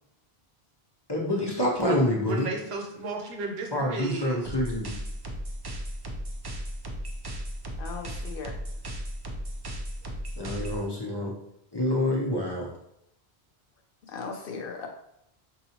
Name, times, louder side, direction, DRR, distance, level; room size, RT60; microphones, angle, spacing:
voice 1, 1.1-2.5 3.7-4.9 10.4-11.3 11.7-12.7, left 1 dB, 30° left, -3 dB, 0.6 m, -27 dB
voice 2, 1.8-4.4, right 2 dB, 75° right, 1 dB, 1.0 m, -34 dB
sound 1, 4.4-10.8, equal, 40° right, 0.3 m, -36 dB
voice 3, 7.8-8.6 14.1-14.9, left 5 dB, 65° left, 3 dB, 0.7 m, -37 dB
4.6 x 2.7 x 2.8 m, 0.80 s
omnidirectional pair, 1.1 m